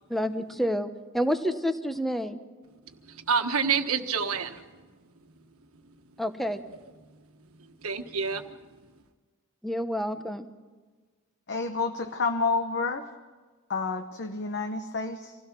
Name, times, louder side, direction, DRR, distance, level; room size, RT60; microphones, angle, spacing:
voice 1, 0.1-0.9 1.1-2.4 6.2-6.6 9.6-10.5, equal, ahead, 9 dB, 1.0 m, -28 dB
voice 2, 2.7-6.2 6.7-9.0, right 6 dB, 85° right, 7 dB, 1.4 m, -32 dB
voice 3, 11.5-13.0 13.7-15.4, left 4 dB, 55° left, 7 dB, 1.0 m, -29 dB
26.0 x 16.5 x 6.1 m, 1.4 s
head